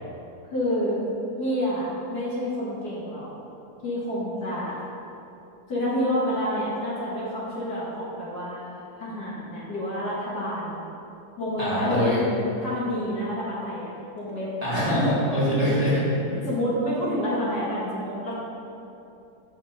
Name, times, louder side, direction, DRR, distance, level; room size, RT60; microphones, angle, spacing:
voice 1, 0.5-1.0 1.4-3.3 3.8-4.8 5.7-8.7 9.0-10.8 11.4-12.3 12.6-15.1 16.5-18.3, equal, 60° left, -7 dB, 2.3 m, -29 dB
voice 2, 11.6-12.2 14.6-16.5, equal, 20° right, -9 dB, 1.8 m, -23 dB
6.8 x 5.2 x 7.0 m, 2.9 s
omnidirectional pair, 2.0 m